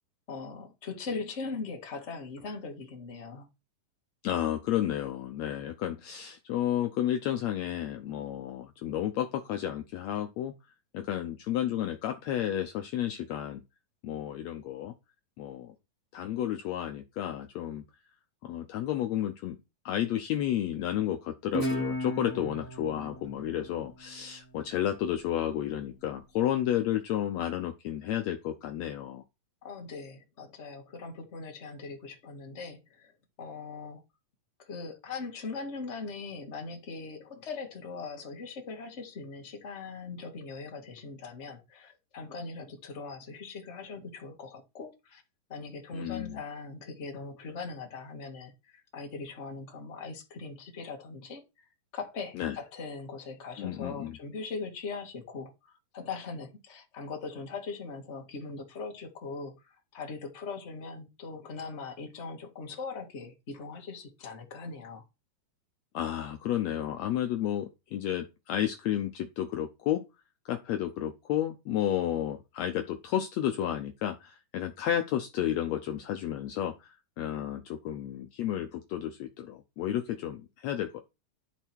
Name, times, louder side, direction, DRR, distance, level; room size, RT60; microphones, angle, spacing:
voice 1, 0.3-3.5 29.6-33.1 33.4-34.0 34.6-45.2 45.5-51.4 51.9-65.0, left 4 dB, 30° left, 1.3 m, -40 dB
voice 2, 4.2-10.5 10.9-13.6 14.0-14.9 15.4-15.7 16.1-17.8 18.4-19.6 19.8-29.2 45.9-46.4 52.3-52.6 53.6-54.2 65.9-70.0 70.4-81.0, left 11 dB, 85° left, 1.5 m, -32 dB
Guitar, 21.5-24.8, equal, 10° left, 1.4 m, -36 dB
12.0 x 4.5 x 4.6 m
omnidirectional pair, 4.1 m